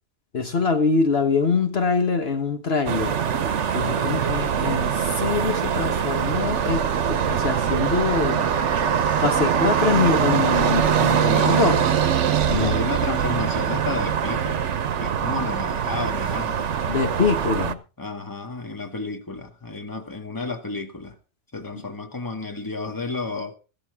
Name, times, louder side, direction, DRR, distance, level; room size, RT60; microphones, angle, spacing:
voice 1, 0.3-3.1 3.7-8.5 9.2-11.8 12.5-12.7 16.9-17.8, left 4 dB, 60° left, 1.5 m, -24 dB
sound 1, 2.9-17.7, right 8 dB, 75° right, 1.2 m, -23 dB
voice 2, 11.2-11.6 12.5-14.7 15.0-16.7 18.0-21.2 21.5-23.5, left 3 dB, 15° left, 1.6 m, -31 dB
14.5 x 13.0 x 3.6 m
omnidirectional pair, 1.2 m